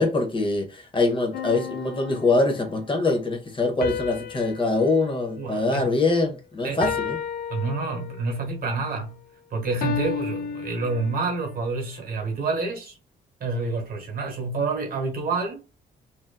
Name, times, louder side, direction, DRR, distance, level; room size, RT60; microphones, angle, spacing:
voice 1, 0.0-7.2, left 3 dB, 30° left, 0.8 m, -24 dB
sound 1, 1.3-2.8 3.8-6.3 6.8-8.4 9.8-11.5, left 7 dB, 55° left, 0.4 m, -33 dB
voice 2, 5.4-6.0 6.6-6.9 7.5-9.2 9.5-13.0 13.4-15.6, right 3 dB, 55° right, 1.1 m, -28 dB
2.7 x 2.3 x 2.2 m
cardioid pair, 120°, 18 cm